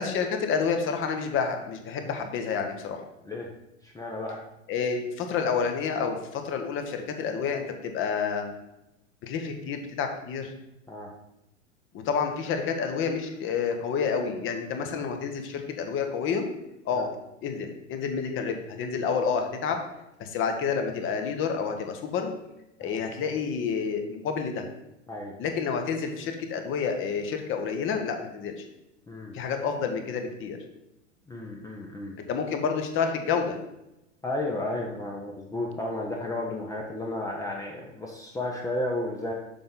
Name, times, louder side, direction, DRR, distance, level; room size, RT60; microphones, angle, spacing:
voice 1, 0.0-3.0 4.7-8.5 9.2-10.5 11.9-16.5 16.8-17.1 17.4-19.8 20.2-22.3 22.8-24.7 25.4-28.6 29.3-30.6 32.2-33.6, left 6 dB, 30° left, 5 dB, 1.1 m, -29 dB
voice 2, 3.8-4.4 10.9-11.1 16.9-17.1 22.8-23.0 25.1-25.3 29.1-29.4 31.3-32.2 34.2-39.3, left 1 dB, 10° left, -1 dB, 0.8 m, -33 dB
6.9 x 5.3 x 3.9 m, 0.87 s
figure-of-eight pair, 95°, 38 cm